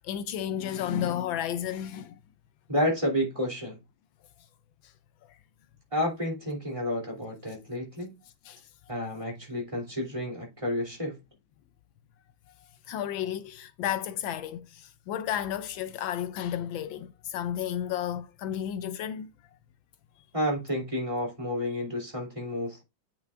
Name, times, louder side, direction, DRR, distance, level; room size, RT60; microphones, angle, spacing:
voice 1, 0.0-2.2 8.4-8.6 12.9-19.3, left 10 dB, 80° left, 1.3 m, -32 dB
voice 2, 2.7-3.8 5.9-8.1 8.9-11.2 20.3-22.8, left 1 dB, 15° right, 3.0 m, -30 dB
9.2 x 5.8 x 2.5 m
omnidirectional pair, 2.2 m